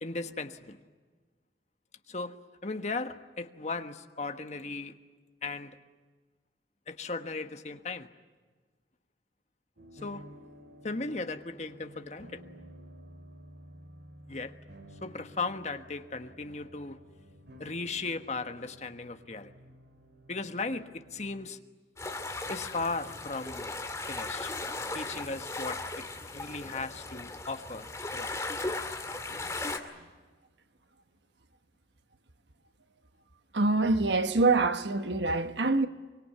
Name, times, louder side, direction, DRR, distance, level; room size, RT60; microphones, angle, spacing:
voice 1, 0.0-0.8 2.1-2.4 2.6-4.9 5.4-5.8 6.9-8.1 10.0-10.2 10.8-12.4 14.3-14.5 15.0-17.0 17.6-19.5 20.3-21.6 22.5-23.7 24.1-24.5 24.8-28.5, left 3 dB, 40° left, 1.3 m, -37 dB
sound 1, 9.8-21.5, equal, 70° right, 2.8 m, -52 dB
sound 2, 22.0-29.8, left 2 dB, 15° left, 2.2 m, -37 dB
voice 2, 33.5-35.9, right 3 dB, 85° right, 1.3 m, -25 dB
24.0 x 23.5 x 9.5 m
head